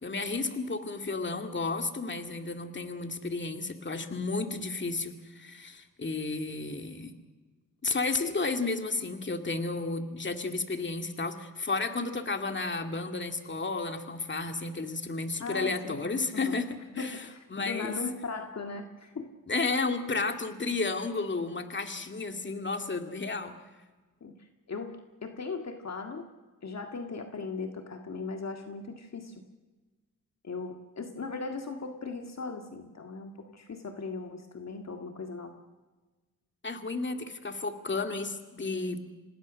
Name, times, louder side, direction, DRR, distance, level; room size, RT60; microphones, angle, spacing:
voice 1, 0.0-7.1 7.8-16.7 16.9-17.3 17.5-18.0 19.5-23.5 36.6-39.0, left 3 dB, 35° left, 6 dB, 2.3 m, -32 dB
voice 2, 15.4-16.0 16.3-16.5 16.9-19.3 24.2-26.3 26.6-29.3 30.4-35.6, left 4 dB, 55° left, 4 dB, 1.9 m, -38 dB
26.5 x 19.0 x 6.3 m, 1.3 s
cardioid pair, 70°, 32 cm